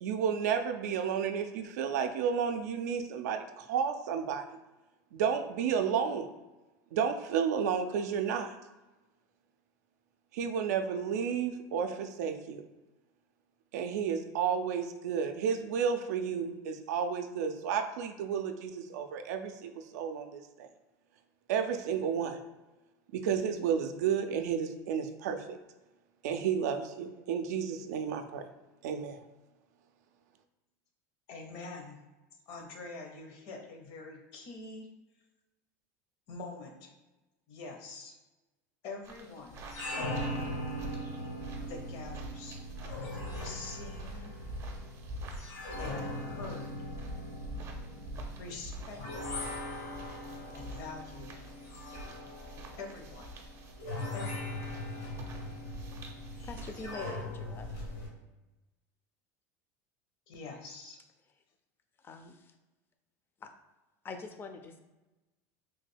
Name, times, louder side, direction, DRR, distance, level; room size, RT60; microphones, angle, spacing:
voice 1, 0.0-4.4 5.1-6.3 6.9-8.5 10.3-12.6 13.7-20.7 21.5-22.4 23.1-25.6 26.2-28.5 28.8-29.2, right 7 dB, 90° right, 7 dB, 0.3 m, -32 dB
voice 2, 31.3-32.0 32.5-34.9 36.3-36.9 37.5-38.2 38.8-39.6 41.7-42.6 43.4-44.4 45.8-46.8 48.4-49.4 50.5-51.5 52.8-53.3 54.1-54.7 60.3-61.0, left 3 dB, 60° left, 3 dB, 0.7 m, -45 dB
sound 1, 39.0-56.9, right 1 dB, 35° right, 0.5 m, -46 dB
sound 2, 39.5-58.1, left 1 dB, 75° left, 1.0 m, -40 dB
voice 3, 56.4-57.7 62.0-62.5 63.4-63.5 64.0-64.8, left 4 dB, 25° left, 6 dB, 0.4 m, -44 dB
3.2 x 2.2 x 3.2 m, 1.1 s
supercardioid pair, 125°, 9 cm